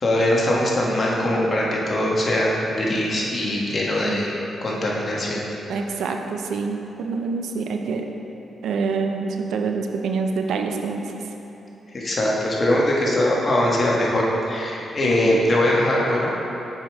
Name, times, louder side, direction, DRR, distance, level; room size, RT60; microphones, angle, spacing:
voice 1, 0.0-4.3 4.6-5.4 11.9-16.3, left 1 dB, 40° left, -4 dB, 1.4 m, -21 dB
voice 2, 5.7-8.1 8.6-11.2 15.0-15.4, right 4 dB, 80° right, 4 dB, 0.5 m, -26 dB
7.2 x 4.9 x 3.5 m, 3.0 s
supercardioid pair, 60°, 0 cm